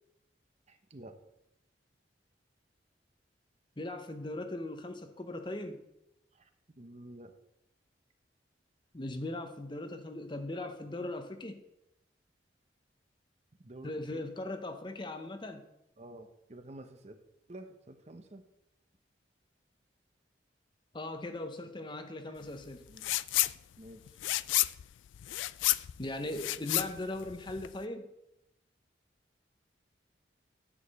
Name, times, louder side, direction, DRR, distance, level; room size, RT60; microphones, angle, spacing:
voice 1, 0.7-1.2 6.3-6.5 6.8-7.3 13.6-14.2 16.0-17.2 17.5-18.5 22.3-22.4 22.9-23.1 23.8-24.0, right 1 dB, 35° right, 7 dB, 0.8 m, -50 dB
voice 2, 3.8-5.8 8.9-11.6 13.8-15.6 20.9-22.8 26.0-28.1, left 2 dB, 25° left, 7 dB, 0.7 m, -39 dB
sound 1, 23.0-23.5 23.9-27.8, left 17 dB, 90° left, 0.3 m, -31 dB
9.9 x 4.8 x 7.5 m, 0.84 s
head